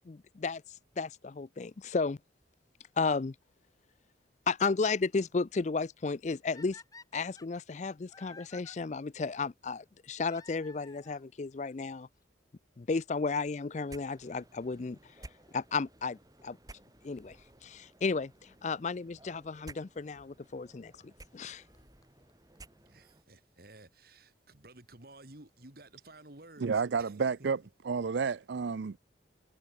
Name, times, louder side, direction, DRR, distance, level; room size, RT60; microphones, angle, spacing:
voice 1, 0.1-2.2 3.0-3.3 4.5-6.8 7.1-12.1 12.8-15.1 15.5-16.6 17.0-17.4 17.6-21.6, left 4 dB, 40° left, 0.4 m, -33 dB
sound 1, 6.5-8.8 10.2-11.3 12.2-12.3 13.0-13.1 13.3-13.4 15.3-15.5 18.4-18.5 19.5-19.6 21.0-21.1 21.4-21.5 21.7-21.8 22.0-22.1 22.3-22.4 22.6-22.7 22.9-23.0, left 4 dB, 20° left, 1.1 m, -53 dB
sound 2, 13.9-23.2, right 1 dB, 20° right, 3.5 m, -55 dB
voice 2, 22.9-27.2, right 2 dB, 50° right, 2.5 m, -54 dB
voice 3, 26.6-27.6 27.8-29.0, right 5 dB, 70° right, 0.5 m, -30 dB
head